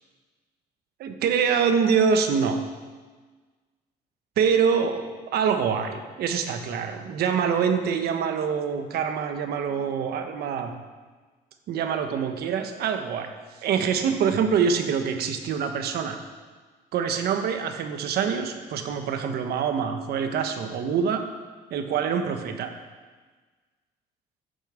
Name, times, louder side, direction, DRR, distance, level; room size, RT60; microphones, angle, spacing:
voice 1, 1.0-2.6 4.4-10.7 11.7-13.3 13.6-16.2 16.9-21.2 21.7-22.7, right 6 dB, 70° right, 6 dB, 1.3 m, -25 dB
11.0 x 7.3 x 7.4 m, 1.4 s
cardioid pair, 110°, 17 cm